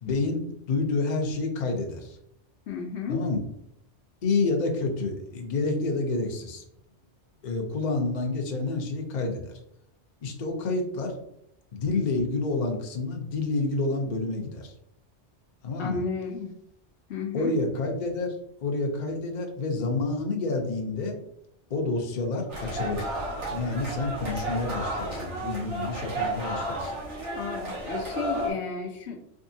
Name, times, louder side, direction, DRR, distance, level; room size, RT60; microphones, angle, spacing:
voice 1, 0.0-2.2 3.1-3.4 4.2-6.6 7.4-9.5 10.2-11.1 11.7-14.7 15.6-16.0 17.3-18.3 18.6-21.2 21.7-23.1 23.5-27.0, left 3 dB, 45° left, 2 dB, 0.7 m, -28 dB
voice 2, 2.7-3.2 15.8-16.5 17.1-17.6 27.3-29.2, left 5 dB, 70° left, 3 dB, 0.9 m, -32 dB
sound 1, 22.5-28.5, right 1 dB, 90° right, 1.7 m, -32 dB
3.6 x 3.4 x 2.7 m, 0.77 s
omnidirectional pair, 1.2 m